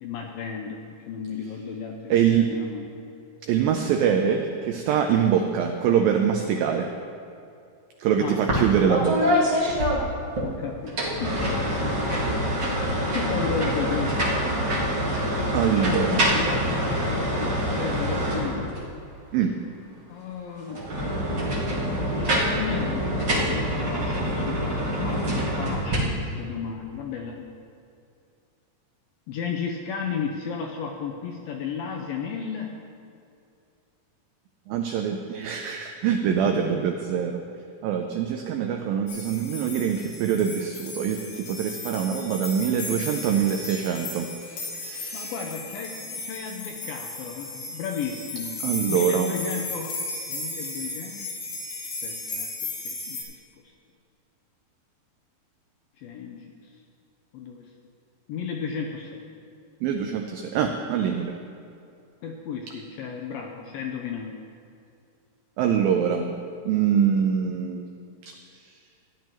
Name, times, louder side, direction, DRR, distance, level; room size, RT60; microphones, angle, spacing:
voice 1, 0.0-2.9 8.2-8.4 10.4-12.1 13.1-14.2 15.8-18.8 20.1-20.8 22.2-27.5 29.3-32.8 45.1-48.6 48.9-50.0 50.3-51.3 52.0-52.5 52.8-53.3 56.0-56.8 57.3-57.7 58.3-59.3 62.2-64.4, left 6 dB, 85° left, 1 dB, 2.1 m, -34 dB
voice 2, 2.1-2.5 3.5-6.9 8.0-9.3 15.5-16.2 19.3-19.5 25.3-25.4 34.7-37.4 37.8-45.3 48.6-49.3 59.8-61.4 65.6-66.3 66.7-67.8, right 8 dB, 85° right, 4 dB, 2.0 m, -24 dB
sound 1, 8.5-8.6 8.9-10.5 10.9-18.9 20.7-26.0, equal, 50° right, 1.3 m, -25 dB
sound 2, 39.1-53.2, left 2 dB, 65° left, 3.2 m, -35 dB
15.0 x 10.0 x 3.0 m, 2.5 s
omnidirectional pair, 4.8 m